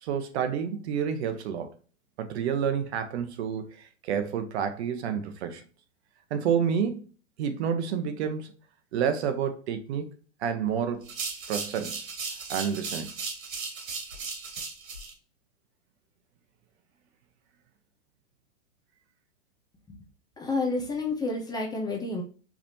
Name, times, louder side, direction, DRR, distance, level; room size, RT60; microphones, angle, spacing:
voice 1, 0.0-1.7 2.2-5.6 6.3-7.0 7.4-8.5 8.9-10.1 10.4-11.1 11.5-12.1 12.5-13.1, right 7 dB, 55° right, 1.0 m, -29 dB
sound 1, 11.0-15.1, right 4 dB, 80° right, 1.8 m, -36 dB
voice 2, 20.4-22.2, left 3 dB, 10° left, 0.7 m, -30 dB
4.8 x 3.5 x 2.7 m
hypercardioid pair, 130°, 39 cm